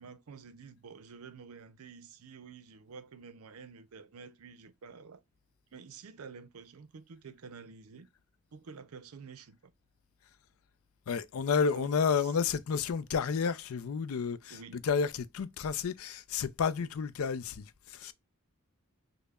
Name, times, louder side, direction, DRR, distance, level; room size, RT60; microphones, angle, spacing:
voice 1, 0.0-5.2 5.7-8.1 8.5-9.6 11.7-11.9 12.2-12.3 14.5-14.8, right 5 dB, 80° right, 0.5 m, -49 dB
voice 2, 11.1-18.1, left 6 dB, 70° left, 0.4 m, -31 dB
5.3 x 2.1 x 2.2 m
head